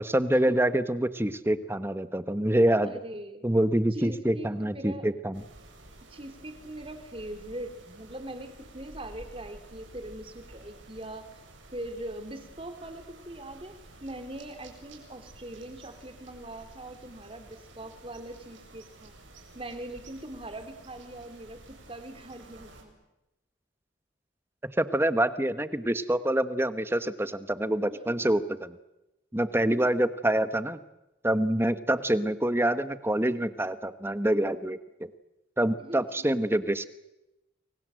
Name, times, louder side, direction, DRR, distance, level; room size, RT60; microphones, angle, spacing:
voice 1, 0.0-2.9 3.4-5.4 24.6-28.8 29.3-30.8 31.2-35.1 35.6-36.9, right 1 dB, 10° right, 12 dB, 1.2 m, -26 dB
voice 2, 2.8-3.5 3.9-5.1 6.0-11.3 11.7-19.1 19.5-22.9 27.9-28.2 35.8-36.3, right 1 dB, 30° right, 8 dB, 3.4 m, -41 dB
sound 1, 5.3-22.8, right 2 dB, 80° right, 7.6 m, -51 dB
29.5 x 23.5 x 7.8 m, 0.95 s
head